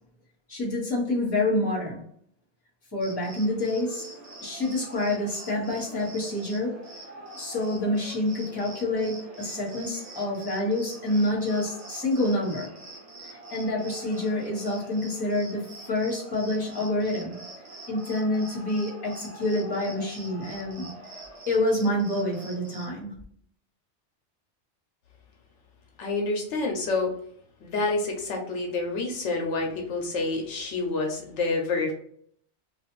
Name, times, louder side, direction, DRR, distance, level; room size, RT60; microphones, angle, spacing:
voice 1, 0.5-2.0 2.9-4.1 4.4-6.9 7.3-12.7 13.2-17.4 17.9-20.9 21.5-23.1, left 1 dB, 20° left, 1.1 m, -27 dB
Cricket, 3.0-22.9, right 1 dB, 70° right, 1.2 m, -44 dB
voice 2, 26.0-27.1 27.6-31.9, left 3 dB, 75° left, 0.9 m, -28 dB
2.5 x 2.4 x 3.0 m
omnidirectional pair, 1.2 m